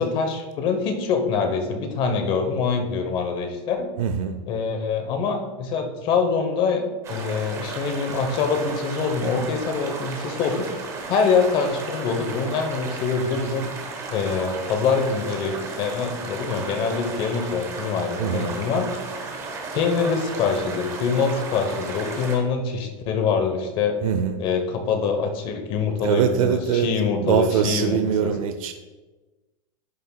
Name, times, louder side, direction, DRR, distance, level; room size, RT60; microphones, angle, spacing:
voice 1, 0.0-3.9 4.5-10.7 11.1-13.7 14.1-18.9 19.7-24.0 24.4-28.3, left 5 dB, 30° left, 6 dB, 0.8 m, -24 dB
voice 2, 4.0-4.4 18.2-18.5 24.0-24.3 26.0-28.7, right 8 dB, 75° right, 7 dB, 0.6 m, -23 dB
sound 1, 7.0-22.4, right 3 dB, 15° right, 0.9 m, -34 dB
11.0 x 6.7 x 2.2 m, 1.2 s
supercardioid pair, 170°, 18 cm